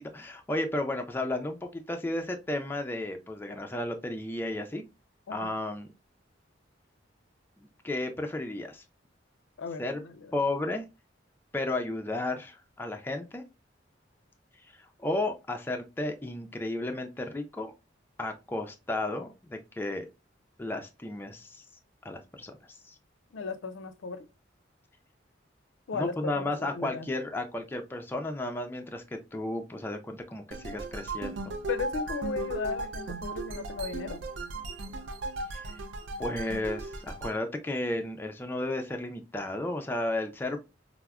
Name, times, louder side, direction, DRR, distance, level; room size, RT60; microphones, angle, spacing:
voice 1, 0.0-4.9 5.3-5.9 7.6-8.8 9.8-10.0 10.3-10.8 11.5-13.4 14.7-17.7 18.2-20.1 20.6-21.7 22.0-23.0 25.9-31.5 35.5-35.8 36.2-40.6, left 2 dB, 10° left, 0.3 m, -33 dB
voice 2, 9.6-10.4 23.3-24.3 25.9-27.1 31.7-34.2, left 5 dB, 80° left, 0.4 m, -36 dB
sound 1, 30.5-37.4, right 2 dB, 75° right, 0.5 m, -36 dB
4.6 x 2.0 x 2.2 m
head